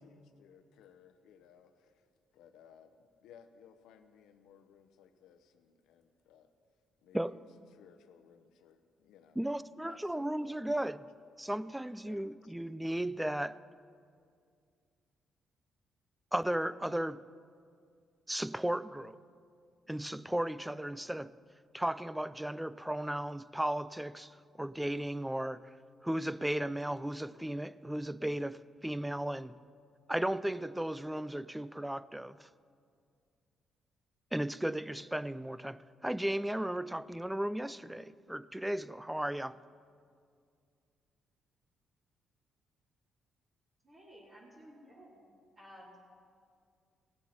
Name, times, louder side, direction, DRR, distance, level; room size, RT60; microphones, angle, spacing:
voice 1, 0.0-2.0 2.3-6.5 7.0-7.4 7.7-9.4 9.8-10.7 12.0-12.5, left 8 dB, 85° left, 0.8 m, -60 dB
voice 2, 9.4-11.0 11.4-13.6 16.3-17.2 18.3-19.2 19.9-21.3 21.7-25.7 26.0-29.6 30.1-32.5 34.3-39.6, right 1 dB, 5° right, 0.3 m, -35 dB
voice 3, 43.8-45.3 45.5-46.1, equal, 30° right, 3.2 m, -55 dB
17.5 x 7.6 x 5.8 m
cardioid pair, 90°, 0 cm